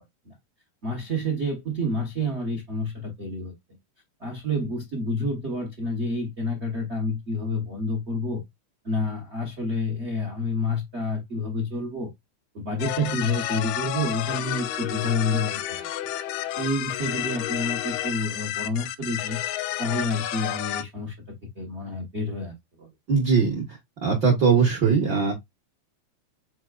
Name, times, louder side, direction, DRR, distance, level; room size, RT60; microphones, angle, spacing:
voice 1, 0.8-3.5 4.2-8.4 8.8-12.1 12.5-15.9 16.6-19.4 19.8-21.1 21.5-22.9, left 1 dB, 90° right, 0.5 m, -29 dB
sound 1, 12.8-20.8, left 13 dB, 85° left, 1.9 m, -31 dB
voice 2, 23.1-23.6 24.0-25.3, right 5 dB, 60° right, 1.3 m, -20 dB
4.6 x 4.5 x 2.3 m
omnidirectional pair, 3.3 m